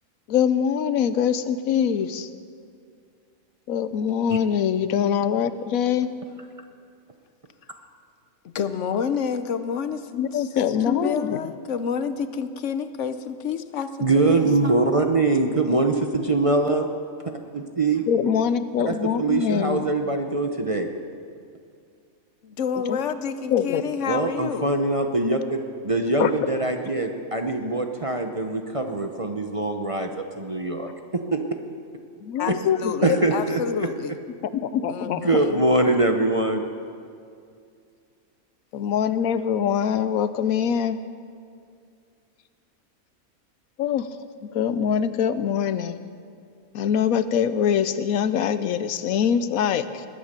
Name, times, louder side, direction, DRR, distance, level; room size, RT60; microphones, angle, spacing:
voice 1, 0.3-2.3 3.7-6.1 10.1-11.4 18.1-19.8 22.7-23.0 23.5-23.8 26.2-26.3 32.2-33.2 34.5-35.4 38.7-41.0 43.8-44.1 44.5-46.0 46.7-50.1, left 8 dB, 90° left, 13 dB, 1.1 m, -23 dB
voice 2, 8.5-10.5 10.8-14.7 22.4-24.7 32.4-34.2 34.9-35.6, left 6 dB, 65° left, 11 dB, 1.0 m, -29 dB
voice 3, 14.0-16.9 17.5-18.1 18.9-20.9 24.1-30.1 30.4-31.4 33.0-33.6 35.2-36.6, right 2 dB, 30° right, 4 dB, 0.7 m, -23 dB
20.5 x 8.9 x 6.8 m, 2.3 s
omnidirectional pair, 1.4 m